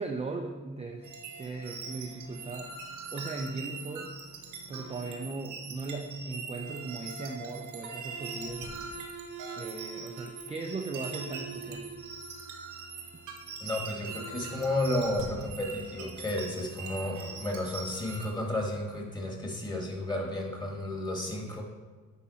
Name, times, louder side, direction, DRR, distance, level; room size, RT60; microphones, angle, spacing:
voice 1, 0.0-2.7 3.1-4.1 4.7-8.7 9.6-11.9, right 3 dB, 20° right, 2 dB, 0.5 m, -38 dB
sound 1, 1.0-18.3, right 4 dB, 80° right, 1.3 m, -42 dB
sound 2, 8.4-9.5 10.2-10.7 11.6-13.0 14.2-16.0, left 2 dB, 65° left, 1.5 m, -49 dB
voice 2, 13.6-21.6, left 1 dB, 15° left, 0 dB, 1.9 m, -32 dB
10.0 x 3.7 x 4.2 m, 1.4 s
cardioid pair, 90°, 30 cm